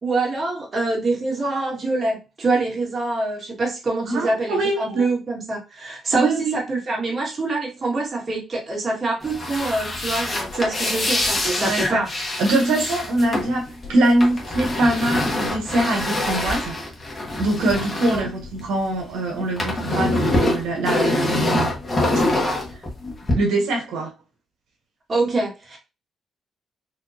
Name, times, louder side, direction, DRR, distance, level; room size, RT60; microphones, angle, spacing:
voice 1, 0.0-12.1 18.1-18.2 25.1-25.8, right 3 dB, 40° right, -2 dB, 2.1 m, -25 dB
voice 2, 4.0-5.1 6.1-6.5 11.6-12.0 12.4-16.8 17.4-21.7 23.3-24.1, right 2 dB, 85° right, 0 dB, 1.6 m, -23 dB
sound 1, 9.2-19.0 19.3-23.3, left 1 dB, 25° left, 1.5 m, -25 dB
4.3 x 2.8 x 2.9 m, 0.29 s
cardioid pair, 90°, 0 cm